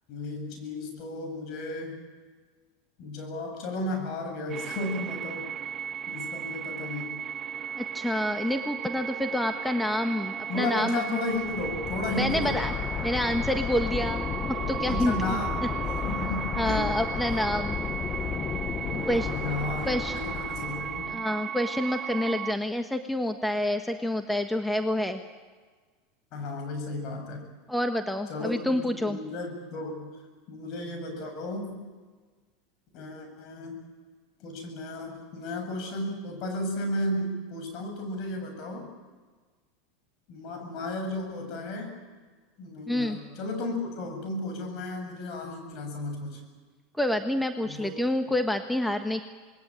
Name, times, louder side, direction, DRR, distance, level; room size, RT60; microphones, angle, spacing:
voice 1, 0.1-2.0 3.0-5.5 6.1-7.2 10.5-12.6 14.9-17.0 18.1-21.1 26.3-27.5 28.3-30.2 30.5-31.9 32.9-33.8 34.4-38.9 40.3-42.0 42.6-46.4 47.6-47.9, left 2 dB, 55° left, 4 dB, 7.8 m, -34 dB
sound 1, 4.5-22.5, right 8 dB, 35° right, 0.7 m, -35 dB
voice 2, 7.8-11.2 12.2-12.7 13.0-15.1 16.6-17.8 19.1-19.3 19.8-20.2 21.1-25.2 27.7-29.2 42.9-43.2 47.0-49.2, left 1 dB, 5° left, 6 dB, 1.4 m, -28 dB
sound 2, 11.4-21.2, left 8 dB, 35° left, 0.8 m, -33 dB
27.0 x 20.5 x 9.1 m, 1.4 s
hypercardioid pair, 95°, 0 cm